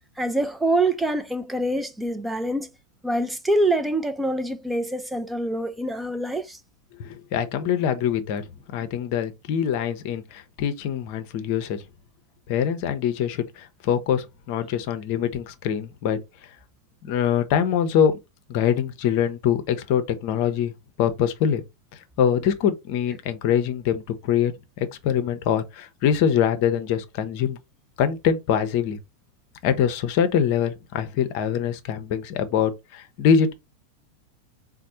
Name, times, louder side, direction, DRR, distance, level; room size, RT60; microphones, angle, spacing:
voice 1, 0.2-2.7 3.0-6.6, right 1 dB, 5° right, 0.4 m, -25 dB
voice 2, 7.0-8.4 8.7-11.8 12.5-16.2 17.0-18.1 18.5-20.7 21.0-21.6 22.2-24.5 24.8-27.6 28.0-29.0 29.6-33.5, left 8 dB, 45° left, 0.6 m, -24 dB
4.2 x 2.0 x 4.2 m
figure-of-eight pair, 90°, 0 cm